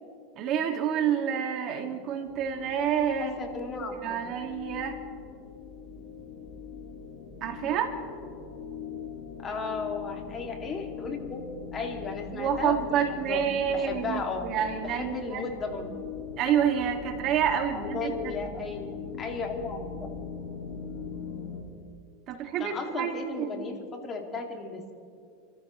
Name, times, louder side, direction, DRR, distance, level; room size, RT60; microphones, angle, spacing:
voice 1, 0.4-3.4 4.0-5.0 7.4-7.9 12.3-15.4 16.4-18.4 22.3-23.7, right 8 dB, 50° right, 5 dB, 1.9 m, -28 dB
sound 1, 2.2-21.6, left 6 dB, 55° left, 4.8 m, -41 dB
voice 2, 3.2-4.2 9.4-11.4 11.7-13.4 13.7-14.5 14.8-16.0 17.7-19.9 22.6-24.9, left 4 dB, 30° left, 2 dB, 2.3 m, -35 dB
28.5 x 14.0 x 3.1 m, 2.3 s
supercardioid pair, 120°, 0 cm